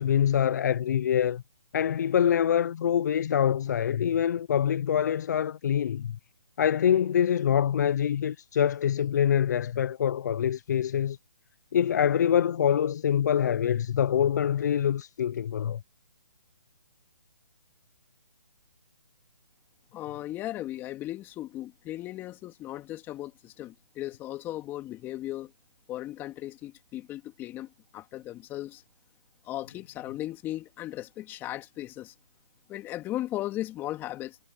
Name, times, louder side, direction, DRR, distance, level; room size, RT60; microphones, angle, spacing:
voice 1, 0.0-1.4 1.7-6.2 6.6-11.2 11.7-15.8, left 9 dB, 45° left, 0.7 m, -25 dB
voice 2, 19.9-25.5 25.9-28.8 29.4-32.1 32.7-34.4, left 14 dB, 15° left, 2.6 m, -37 dB
hypercardioid pair, 150°, 13 cm